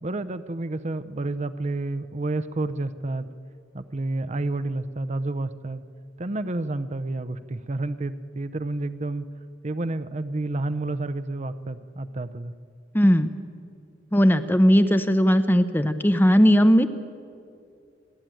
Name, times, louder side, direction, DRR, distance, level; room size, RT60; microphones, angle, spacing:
voice 1, 0.0-3.3 3.7-5.8 6.2-9.2 9.6-12.5, right 2 dB, 40° right, 11 dB, 0.7 m, -30 dB
voice 2, 12.9-13.3 14.1-16.9, equal, 10° left, 10 dB, 0.8 m, -18 dB
28.5 x 11.5 x 9.1 m, 2.4 s
head